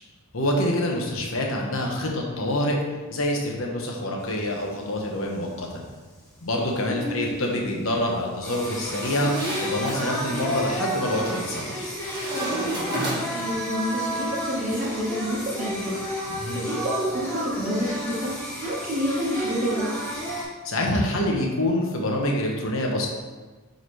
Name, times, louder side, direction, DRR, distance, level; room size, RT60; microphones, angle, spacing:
voice 1, 0.3-2.8 3.1-5.8 6.4-9.3 9.6-11.9 16.3-16.6 20.6-23.1, left 1 dB, 70° left, 0 dB, 1.2 m, -26 dB
Singing, 4.2-20.4, equal, 5° left, 2.0 m, -32 dB
voice 2, 6.9-7.3 13.3-16.0 16.5-18.3 18.6-19.9, equal, 35° right, -5 dB, 1.5 m, -28 dB
sound 1, 8.9-10.1 11.1-11.6 12.0-13.5, right 1 dB, 20° right, 1.9 m, -31 dB
9.4 x 4.1 x 3.3 m, 1.3 s
head